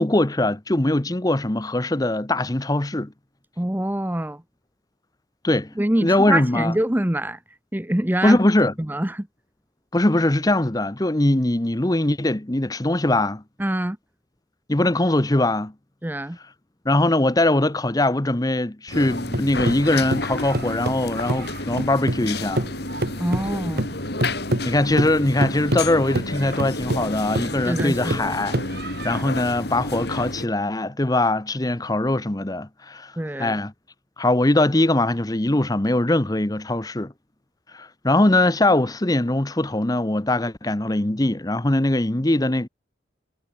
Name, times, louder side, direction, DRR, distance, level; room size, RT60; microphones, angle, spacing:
voice 1, 0.0-3.1 5.4-5.7 6.0-6.7 8.2-8.7 9.9-13.4 14.7-15.7 16.8-22.7 24.6-33.1 33.4-33.7 34.2-37.1 37.7-42.7, left 1 dB, 20° left, 0.9 m, -21 dB
voice 2, 3.6-4.4 5.8-7.4 7.7-8.4 8.8-9.3 13.6-14.0 16.0-16.4 23.2-23.9 27.7-28.4 33.2-33.6, right 1 dB, 10° right, 0.8 m, -25 dB
sound 1, 18.9-30.5, left 2 dB, 60° left, 5.1 m, -31 dB
sound 2, 18.9-22.3 22.6-29.2, right 1 dB, 55° right, 2.5 m, -28 dB
head